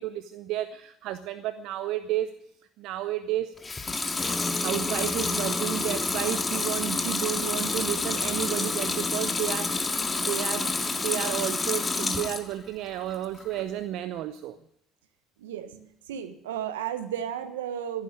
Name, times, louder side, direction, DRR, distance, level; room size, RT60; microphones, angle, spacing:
voice 1, 0.0-2.3 2.8-3.5 4.5-14.6, right 13 dB, 65° right, 12 dB, 0.7 m, -32 dB
Water tap faucet / Sink (filling or washing) / Liquid, 3.6-12.5 12.9-13.6, left 3 dB, 25° left, 2.0 m, -29 dB
sound 1, 4.2-10.1, left 1 dB, 5° left, 1.2 m, -39 dB
voice 2, 15.4-18.0, right 9 dB, 85° right, 11 dB, 1.3 m, -34 dB
15.0 x 11.0 x 9.0 m, 0.75 s
hypercardioid pair, 60°, 0 cm